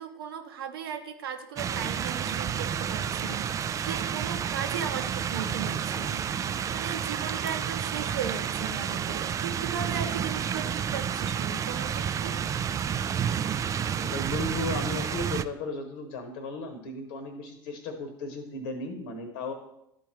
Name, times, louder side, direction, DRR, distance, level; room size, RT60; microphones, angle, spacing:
voice 1, 0.0-6.3 6.7-12.4, right 7 dB, 70° right, 7 dB, 0.8 m, -37 dB
sound 1, 1.6-15.4, right 8 dB, 25° right, 0.3 m, -30 dB
voice 2, 14.0-19.5, left 2 dB, 65° left, 6 dB, 1.0 m, -35 dB
11.5 x 4.5 x 3.1 m, 0.81 s
figure-of-eight pair, 75°, 12 cm